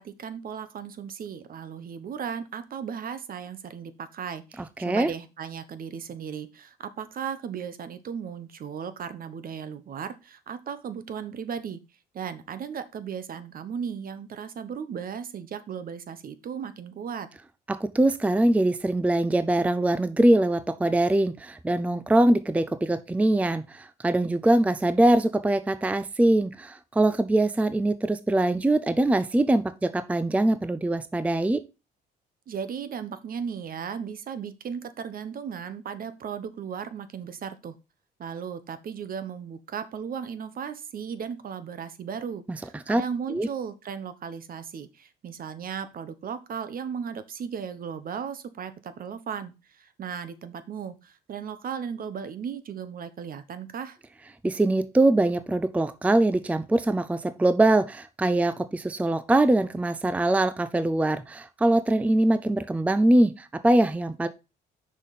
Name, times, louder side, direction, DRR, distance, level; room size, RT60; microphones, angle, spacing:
voice 1, 0.0-11.8 12.1-17.3 32.5-37.7 38.2-54.0, right 7 dB, 50° right, 13 dB, 1.0 m, -36 dB
voice 2, 4.8-5.1 17.7-31.6 42.9-43.0 43.3-43.5 54.4-64.3, right 1 dB, 5° right, 13 dB, 0.5 m, -23 dB
6.3 x 5.3 x 4.1 m, 0.28 s
cardioid pair, 90°, 19 cm